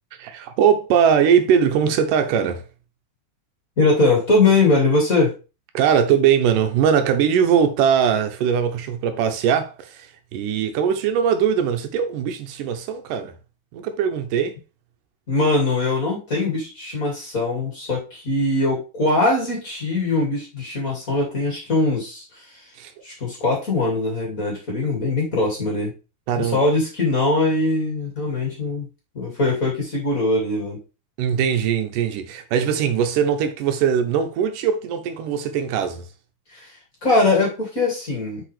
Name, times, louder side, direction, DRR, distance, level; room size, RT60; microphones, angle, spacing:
voice 1, 0.2-2.7 5.7-13.3 13.7-14.6 22.8-22.9 26.3-26.6 31.2-36.1, right 8 dB, 90° right, 2.6 m, -20 dB
voice 2, 3.8-5.3 15.3-22.7 23.0-25.9 26.4-28.9 29.1-30.8 36.5-36.7 37.0-38.4, left 2 dB, 30° left, 2.5 m, -21 dB
6.4 x 5.6 x 3.3 m
omnidirectional pair, 3.7 m